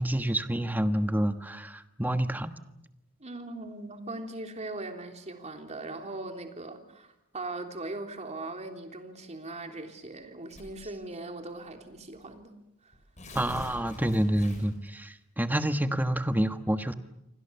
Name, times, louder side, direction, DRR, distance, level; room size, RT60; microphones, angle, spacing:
voice 1, 0.0-2.5 13.3-16.9, right 1 dB, 10° right, 9 dB, 1.4 m, -28 dB
voice 2, 3.2-12.5 12.8-12.9, right 2 dB, 35° right, 4 dB, 3.4 m, -40 dB
Tearing, 10.5-10.9 11.8-11.9 12.2-12.3 12.9-14.9, left 1 dB, 35° left, 7.4 m, -43 dB
28.5 x 24.5 x 7.0 m, 0.88 s
head